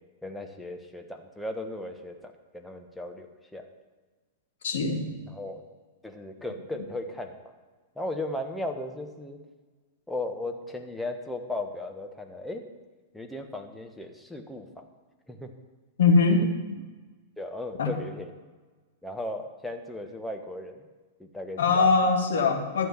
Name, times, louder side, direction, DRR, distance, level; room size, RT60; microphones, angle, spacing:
voice 1, 0.2-3.3 3.5-3.7 5.3-5.6 6.0-7.4 7.9-9.4 10.1-12.6 13.1-14.9 15.3-15.5 16.3-16.4 17.4-18.3 19.0-20.9 21.2-21.9, left 1 dB, 5° left, 4 dB, 1.3 m, -36 dB
voice 2, 4.6-5.1 6.7-6.8 16.0-16.4 17.8-17.9 21.6-22.9, left 4 dB, 60° left, 3 dB, 1.9 m, -22 dB
13.0 x 6.9 x 7.2 m, 1.3 s
figure-of-eight pair, 100°, 0 cm